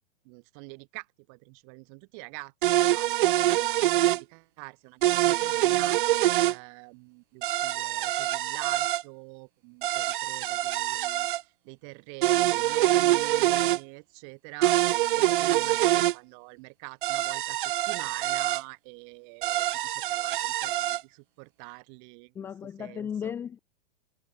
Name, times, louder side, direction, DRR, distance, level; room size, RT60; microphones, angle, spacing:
voice 1, 0.2-6.0 6.4-14.7 15.1-22.3 22.8-23.3, right 40 dB or more, 30° right, 3.3 m, -46 dB
sound 1, 2.6-4.2 5.0-6.6 7.4-9.0 9.8-11.4 12.2-13.8 14.6-16.1 17.0-18.6 19.4-21.0, right 14 dB, 50° right, 1.0 m, -25 dB
voice 2, 22.3-23.6, left 8 dB, 5° left, 0.5 m, -35 dB
supercardioid pair, 165°, 32 cm